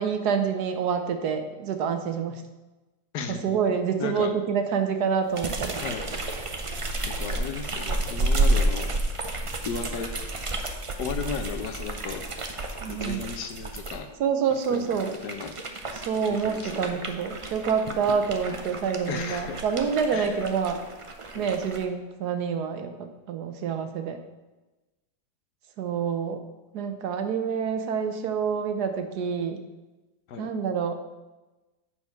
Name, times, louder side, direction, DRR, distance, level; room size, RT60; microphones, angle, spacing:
voice 1, 0.0-2.4 3.3-5.8 12.8-13.3 14.2-15.2 16.0-20.8 21.3-24.2 25.8-26.4 26.7-29.6 30.4-30.9, right 6 dB, 75° right, 7 dB, 1.4 m, -27 dB
voice 2, 3.1-4.3 5.8-6.1 7.1-8.9 9.6-10.1 11.0-12.2 12.9-14.1 14.7-15.5 16.1-17.0 19.1-19.6 20.1-20.4 21.3-21.6 30.3-30.5, left 6 dB, 80° left, 7 dB, 1.4 m, -35 dB
sound 1, 5.3-14.0 14.5-21.8, right 2 dB, 50° right, 0.4 m, -31 dB
8.6 x 4.7 x 5.8 m, 1.1 s
omnidirectional pair, 1.7 m